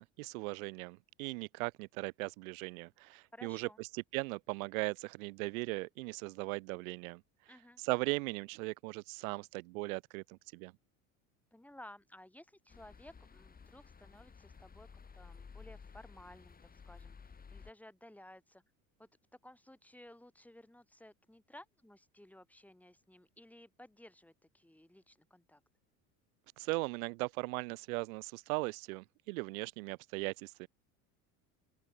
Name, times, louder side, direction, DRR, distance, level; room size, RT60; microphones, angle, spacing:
voice 1, 0.0-7.2 7.8-10.7 26.6-30.7, right 27 dB, 75° right, 1.1 m, -38 dB
voice 2, 3.3-3.8 7.5-7.8 11.5-14.9 15.1-16.6 16.9-18.6 19.0-19.1 19.4-25.6, left 1 dB, 5° left, 7.7 m, -56 dB
sound 1, 12.7-17.7, left 5 dB, 20° left, 1.8 m, -54 dB
open air
supercardioid pair, 90°, 42 cm